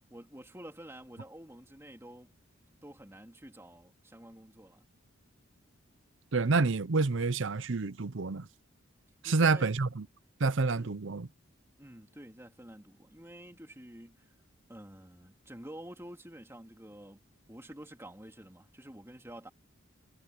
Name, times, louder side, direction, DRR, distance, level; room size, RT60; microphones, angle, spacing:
voice 1, 0.1-2.3 2.8-4.9 9.2-9.7 10.8-10.9 11.8-14.3 14.7-17.2 17.5-19.5, right 1 dB, 10° right, 3.2 m, -49 dB
voice 2, 6.3-8.5 9.2-10.1 10.4-11.3, right 3 dB, 60° right, 0.7 m, -28 dB
head